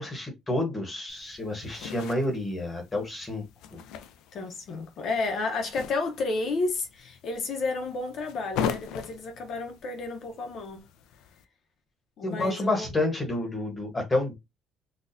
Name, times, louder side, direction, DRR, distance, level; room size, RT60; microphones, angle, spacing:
voice 1, 0.0-3.4 3.7-3.8 12.2-14.3, left 2 dB, 15° left, 1.0 m, -29 dB
sound 1, 1.1-11.4, left 7 dB, 80° left, 0.4 m, -40 dB
voice 2, 4.3-10.8 12.2-12.9, left 3 dB, 50° left, 0.7 m, -31 dB
4.0 x 2.3 x 2.5 m
cardioid pair, 165°, 0 cm